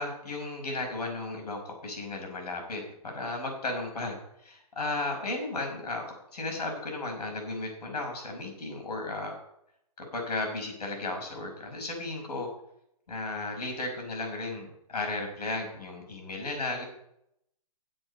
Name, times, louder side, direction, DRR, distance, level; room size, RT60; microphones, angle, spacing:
voice 1, 0.0-6.0 6.3-9.3 10.0-12.5 13.1-16.8, left 2 dB, 80° left, 2 dB, 5.5 m, -34 dB
13.5 x 7.9 x 5.5 m, 0.77 s
hypercardioid pair, 180°, 20 cm